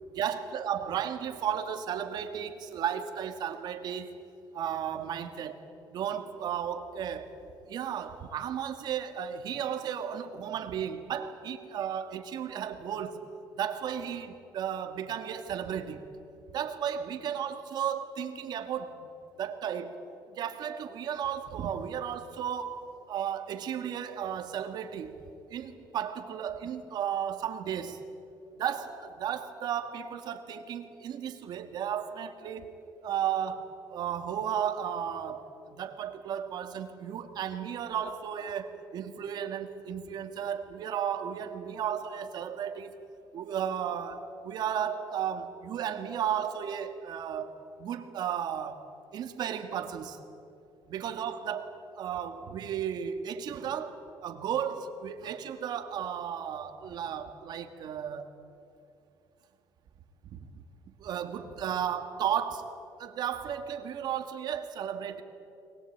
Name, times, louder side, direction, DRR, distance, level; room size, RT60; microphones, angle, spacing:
voice 1, 0.1-4.2 4.5-5.6 5.9-7.4 7.7-13.3 13.5-16.0 16.5-19.1 19.4-20.0 20.3-25.2 25.5-28.1 28.6-32.7 33.0-43.0 43.3-48.8 49.1-50.2 50.9-58.3 60.3-60.6 61.0-62.7 63.0-65.2, right 9 dB, 60° right, 7 dB, 2.0 m, -34 dB
22.5 x 20.0 x 8.8 m, 2.7 s
cardioid pair, 120°, 8 cm